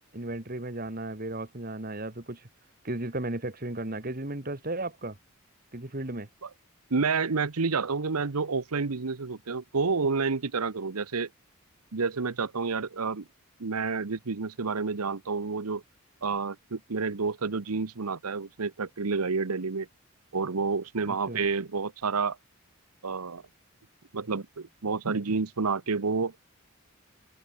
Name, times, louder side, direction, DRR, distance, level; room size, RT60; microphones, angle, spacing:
voice 1, 0.1-2.5 2.8-5.2 5.7-6.3 21.1-21.4, right 2 dB, 40° right, 1.9 m, -35 dB
voice 2, 6.9-11.3 11.9-13.3 13.6-15.8 16.2-19.9 20.3-22.4 23.0-23.4 24.1-26.3, right 4 dB, 90° right, 1.0 m, -29 dB
open air
head